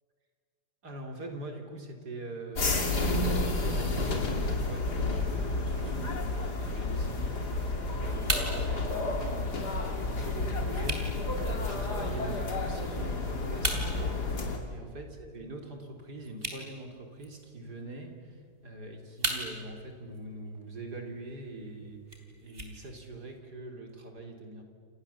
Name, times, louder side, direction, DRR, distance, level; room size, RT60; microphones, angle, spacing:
voice 1, 0.8-24.6, right 2 dB, 65° right, 3 dB, 4.1 m, -43 dB
sound 1, 2.6-14.6, left 2 dB, 65° left, 3.5 m, -31 dB
sound 2, 7.4-23.4, right 2 dB, 30° right, 3.7 m, -41 dB
29.0 x 28.5 x 7.3 m, 2.1 s
omnidirectional pair, 1.9 m